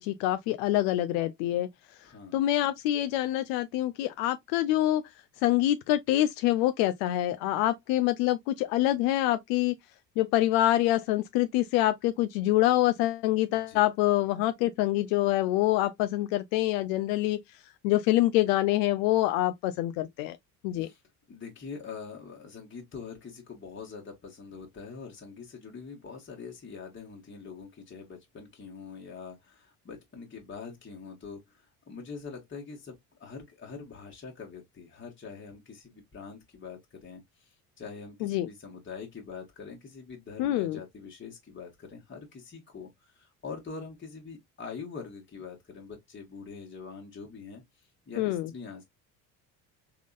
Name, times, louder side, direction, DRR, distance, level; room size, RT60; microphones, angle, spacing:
voice 1, 0.0-1.7 2.3-5.0 5.4-9.7 10.2-20.4 20.6-20.9 38.2-38.5 40.4-40.8 48.2-48.5, left 15 dB, 65° left, 0.5 m, -26 dB
voice 2, 2.0-2.4 13.5-13.8 20.8-21.0 21.3-47.6 48.1-48.8, left 5 dB, 25° left, 1.4 m, -44 dB
3.7 x 3.6 x 2.4 m
hypercardioid pair, 60°, 46 cm